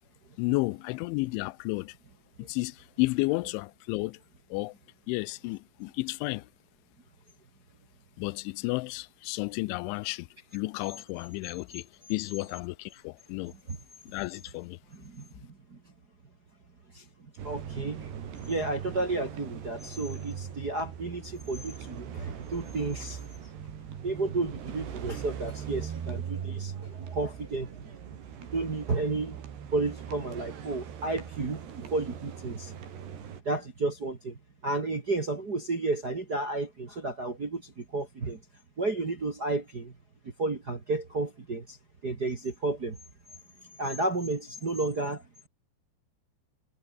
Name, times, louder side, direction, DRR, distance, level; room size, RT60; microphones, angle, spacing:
voice 1, 0.4-1.9 2.4-4.2 4.5-4.7 5.1-6.5 8.2-10.3 10.5-13.5 14.1-14.8, left 23 dB, 85° left, 3.0 m, -32 dB
voice 2, 14.9-15.8 16.9-18.1 18.4-23.2 24.0-28.0 28.5-29.4 29.7-32.7 33.4-38.4 38.8-39.9 40.4-41.8 42.0-43.0 43.8-45.5, right 3 dB, 35° right, 1.6 m, -32 dB
sound 1, 17.4-33.4, right 8 dB, 65° right, 5.2 m, -40 dB
omnidirectional pair, 5.3 m